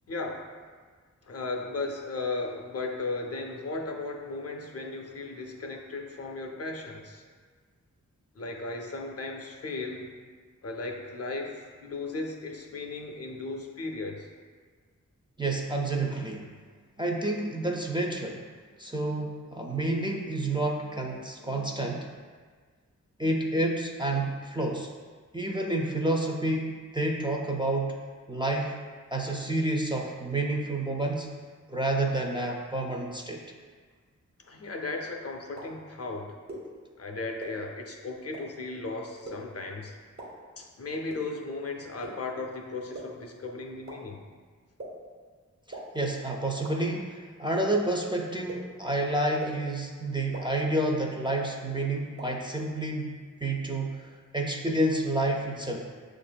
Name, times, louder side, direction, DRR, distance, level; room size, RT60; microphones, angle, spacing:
voice 1, 0.1-0.5 1.2-7.2 8.4-10.1 10.6-14.3 34.4-36.4 37.0-40.0 40.6-44.2, left 3 dB, 50° left, 2 dB, 0.5 m, -36 dB
voice 2, 15.4-16.5 17.0-18.4 18.8-22.1 23.2-24.9 25.3-28.0 28.3-28.7 29.1-31.3 31.7-33.4 45.7-55.9, right 2 dB, 15° right, 0 dB, 0.4 m, -29 dB
sound 1, 35.6-35.7 36.5-36.6 37.4-37.5 38.3-38.4 39.3-39.4 40.2-40.3 41.1-41.2 42.0-42.1 42.9-43.0 43.9-44.0 44.8-44.9 45.7-45.8 46.6-46.7 47.6-47.7 48.5-48.6 49.4-49.5 50.3-50.4 51.3-51.4 52.2-52.3, right 2 dB, 60° right, 1.3 m, -39 dB
6.6 x 2.5 x 2.2 m, 1.5 s
wide cardioid pair, 70°, 31 cm